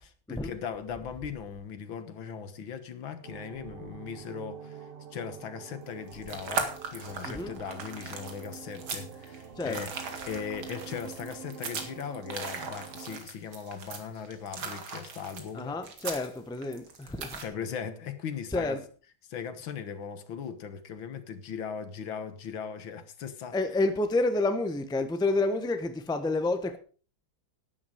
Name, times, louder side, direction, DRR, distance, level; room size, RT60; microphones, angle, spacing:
voice 1, 0.0-9.9 10.3-15.8 17.4-18.8 19.3-23.6, left 7 dB, 80° left, 2.1 m, -39 dB
sound 1, 3.2-13.2, right 6 dB, 40° right, 0.9 m, -46 dB
sound 2, 5.9-17.5, right 5 dB, 90° right, 2.8 m, -38 dB
voice 2, 15.5-17.4 18.5-18.8 23.5-26.8, left 2 dB, 5° left, 0.7 m, -29 dB
12.0 x 10.5 x 5.0 m
omnidirectional pair, 2.1 m